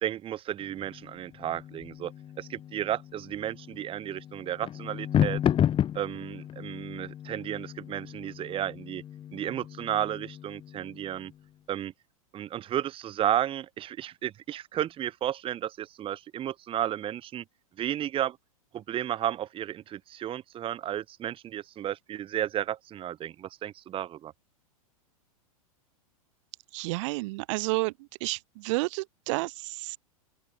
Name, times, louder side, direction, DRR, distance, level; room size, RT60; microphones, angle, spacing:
voice 1, 0.0-2.1 2.4-5.4 5.9-9.0 9.3-11.3 11.7-11.9 12.3-17.4 17.8-18.4 18.7-24.3, right 11 dB, 30° right, 2.1 m, -33 dB
sound 1, 0.6-11.4, left 10 dB, 30° left, 3.9 m, -33 dB
voice 2, 26.7-27.9 28.2-30.0, right 24 dB, 55° right, 1.4 m, -30 dB
open air
hypercardioid pair, 115°, 19 cm